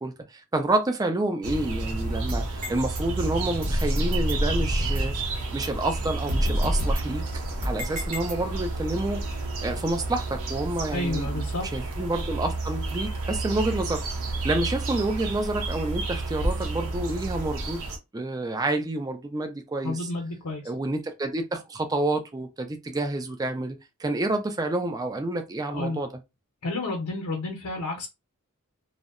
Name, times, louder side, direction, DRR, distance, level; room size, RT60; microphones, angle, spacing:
voice 1, 0.0-7.2 7.6-9.2 9.6-11.4 11.7-17.8 18.1-20.0 20.7-26.1, right 2 dB, 15° right, 0.3 m, -29 dB
sound 1, 1.4-18.0, right 2 dB, 70° right, 0.6 m, -31 dB
sound 2, 2.3-3.0 3.6-5.2 5.6-5.7 6.3-8.7, equal, 40° right, 0.8 m, -28 dB
voice 2, 10.9-11.6 19.8-20.6 25.7-26.0 26.6-28.1, left 2 dB, 80° left, 0.6 m, -30 dB
2.6 x 2.0 x 2.4 m
head